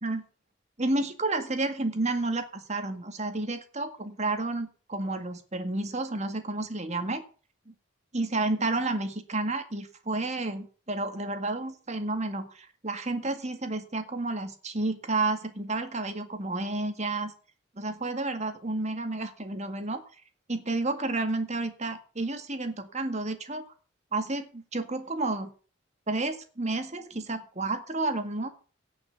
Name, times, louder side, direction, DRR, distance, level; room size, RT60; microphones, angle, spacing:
voice 1, 0.8-7.2 7.7-7.8 8.1-17.3 17.8-20.0 20.5-23.7 24.1-25.5 26.1-28.5, right 2 dB, 35° right, 8 dB, 1.9 m, -31 dB
17.0 x 6.1 x 7.1 m, 0.38 s
head